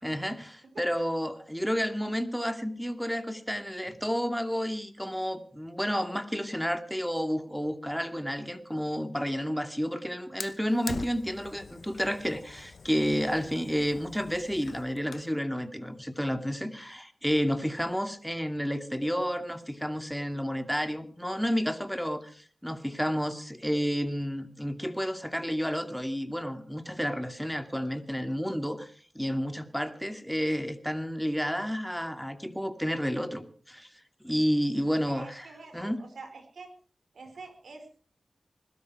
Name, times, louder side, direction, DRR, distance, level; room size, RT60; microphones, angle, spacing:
voice 1, 0.0-33.9 34.2-36.0, equal, ahead, 8 dB, 2.3 m, -31 dB
Fire, 10.4-15.4, left 4 dB, 75° left, 0.9 m, -44 dB
voice 2, 35.0-36.7 37.1-38.0, right 4 dB, 85° right, 6 dB, 4.4 m, -46 dB
21.0 x 12.5 x 4.8 m, 0.42 s
cardioid pair, 45°, 0 cm